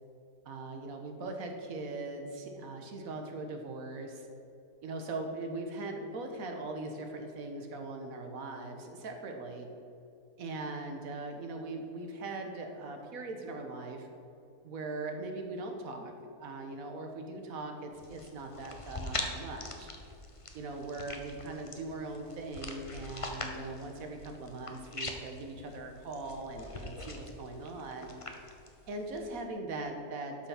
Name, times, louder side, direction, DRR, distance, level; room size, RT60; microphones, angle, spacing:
voice 1, 0.4-4.3 4.8-9.7 10.4-14.1 14.6-16.1 16.4-19.9 20.5-28.1 28.9-30.5, right 2 dB, 60° right, 4 dB, 1.6 m, -40 dB
sound 1, 17.9-29.4, left 2 dB, 25° left, 0.7 m, -43 dB
12.0 x 5.8 x 5.7 m, 2.8 s
omnidirectional pair, 1.7 m